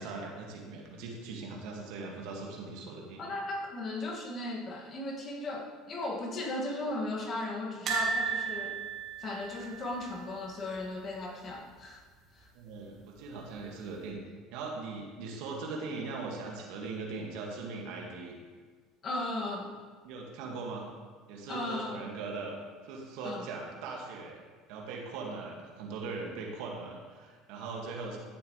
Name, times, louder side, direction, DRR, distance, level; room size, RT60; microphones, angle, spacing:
voice 1, 0.0-3.3 12.5-14.2 14.5-18.4 20.0-20.9 21.3-24.4 24.7-28.2, right 3 dB, 70° right, -1 dB, 2.0 m, -40 dB
voice 2, 3.2-8.8 9.2-12.0 12.3-12.5 19.0-19.8 21.5-22.0 23.2-23.5, left 2 dB, 45° left, 0 dB, 2.1 m, -36 dB
sound 1, 7.9-10.9 11.2-11.4 11.6-11.7 13.0-13.5 14.0-14.1, right 5 dB, 55° right, 2.6 m, -35 dB
14.5 x 7.2 x 3.3 m, 1.5 s
hypercardioid pair, 75°, 0 cm